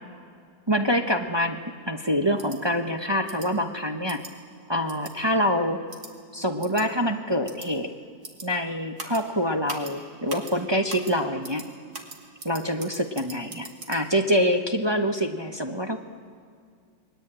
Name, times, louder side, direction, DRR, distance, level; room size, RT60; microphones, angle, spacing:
voice 1, 0.7-1.6 1.9-4.2 4.7-5.8 6.3-7.9 8.4-11.6 12.4-16.0, equal, 20° right, 4 dB, 0.8 m, -25 dB
sound 1, 2.4-2.6 3.3-3.5 4.1-4.3 4.9-5.1 5.9-6.1 6.6-6.8 7.5-7.7 8.2-8.5 9.0-9.2 9.7-9.9 10.3-10.5 10.9-11.1 11.4-11.7 11.9-14.0, right 3 dB, 55° right, 3.0 m, -39 dB
29.5 x 21.5 x 8.9 m, 2.2 s
omnidirectional pair, 2.0 m